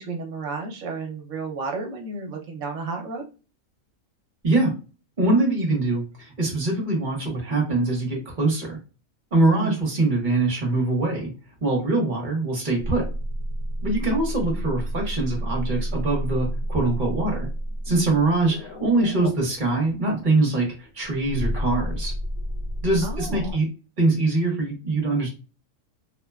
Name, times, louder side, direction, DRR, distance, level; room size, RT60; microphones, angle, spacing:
voice 1, 0.0-3.2 9.5-9.7 23.0-23.5, right 4 dB, 65° right, 2 dB, 0.9 m, -32 dB
voice 2, 5.2-8.8 9.3-11.3 11.6-13.1 13.8-17.5 17.8-22.1 22.8-23.7 24.0-25.3, right 2 dB, 40° right, 0 dB, 0.8 m, -23 dB
sound 1, 12.8-20.0 21.0-23.5, equal, 75° left, 0.5 m, -30 dB
3.0 x 2.1 x 2.2 m, 0.33 s
omnidirectional pair, 1.5 m